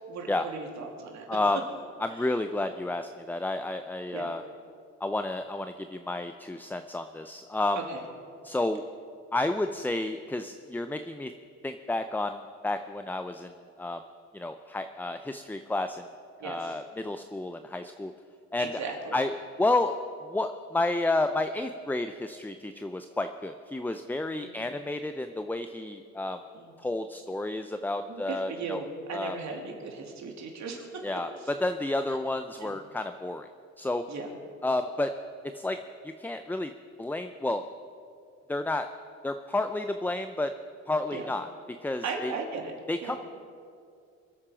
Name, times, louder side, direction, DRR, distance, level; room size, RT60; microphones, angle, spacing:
voice 1, 0.1-1.3 2.1-2.3 4.1-4.3 7.7-8.0 16.4-16.7 18.6-19.2 24.4-24.7 26.5-26.7 28.1-31.0 32.6-32.8 34.1-34.3 41.1-41.3 42.0-42.7 43.0-43.2, right 4 dB, 65° right, 1 dB, 2.8 m, -37 dB
voice 2, 1.3-1.6 2.0-4.4 5.0-7.8 8.4-8.8 9.3-11.3 11.6-14.0 14.3-16.0 16.4-18.1 18.5-18.8 19.1-19.3 19.6-26.4 26.8-28.8 29.1-29.4 31.0-33.5 33.8-34.0 34.6-35.1 35.5-35.8 36.0-36.7 37.0-37.6 38.5-38.9 39.2-40.5 40.9-41.5 41.8-42.3 42.9-43.2, left 2 dB, 5° left, 8 dB, 0.5 m, -31 dB
25.0 x 8.7 x 5.1 m, 2.3 s
cardioid pair, 90°, 30 cm